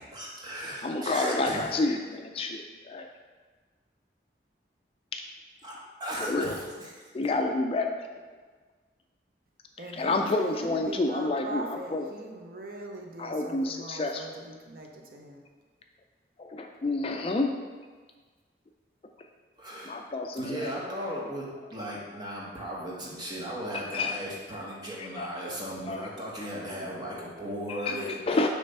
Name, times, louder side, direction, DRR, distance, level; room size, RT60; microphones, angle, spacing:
voice 1, 0.1-1.7 5.6-7.1 19.6-19.9 20.4-28.4, equal, 25° right, -4 dB, 1.2 m, -36 dB
voice 2, 0.6-3.1 5.1-5.2 6.2-6.6 7.1-7.9 9.8-12.1 13.2-14.3 16.4-17.5 19.9-20.7 23.9-24.2 25.0-25.3 25.9-26.1 27.7-28.5, left 2 dB, 30° left, 4 dB, 0.3 m, -29 dB
voice 3, 9.8-15.4, right 1 dB, 55° right, 1 dB, 0.7 m, -41 dB
6.5 x 3.3 x 5.4 m, 1.4 s
head